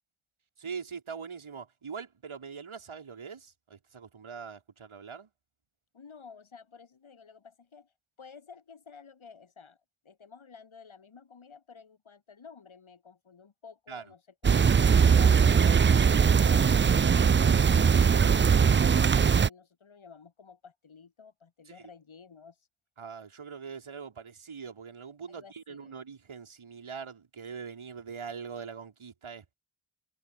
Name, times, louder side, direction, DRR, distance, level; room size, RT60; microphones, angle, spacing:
voice 1, 0.6-5.3 13.9-14.0 21.7-21.9 23.0-29.5, right 6 dB, 85° right, 5.4 m, -42 dB
voice 2, 5.9-7.9 8.2-9.8 10.0-14.7 15.2-22.6 25.3-25.9, left 5 dB, 80° left, 4.8 m, -52 dB
sound 1, 14.4-19.5, right 6 dB, 25° right, 0.4 m, -21 dB
cardioid pair, 50°, 47 cm